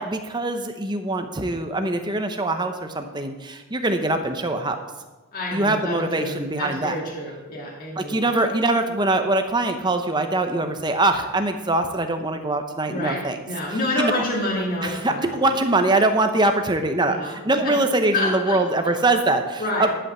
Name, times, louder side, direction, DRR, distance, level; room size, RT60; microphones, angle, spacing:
voice 1, 0.0-4.8 5.5-7.0 8.0-13.4 14.0-14.1 14.8-19.9, right 2 dB, 20° right, 6 dB, 0.8 m, -23 dB
voice 2, 5.3-8.2 12.9-15.3 17.0-17.3 17.6-17.8 18.1-18.9 19.6-19.9, left 1 dB, 40° left, -3 dB, 2.1 m, -28 dB
11.0 x 5.6 x 7.4 m, 1.2 s
head